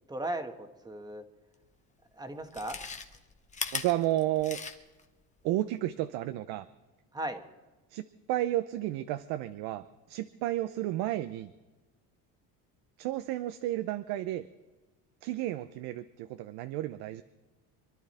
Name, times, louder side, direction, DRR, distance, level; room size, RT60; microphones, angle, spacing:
voice 1, 0.1-1.2 2.1-2.8 7.1-7.4, right 1 dB, 10° right, 6 dB, 1.3 m, -36 dB
Chewing mastication, 1.6-1.7 2.4-5.1 5.4-5.5, left 5 dB, 20° left, 1.1 m, -38 dB
voice 2, 3.7-4.6 5.4-6.7 7.9-11.5 13.0-14.4 15.2-17.2, right 14 dB, 80° right, 11 dB, 0.8 m, -32 dB
26.0 x 11.5 x 4.3 m, 1.2 s
cardioid pair, 145°, 38 cm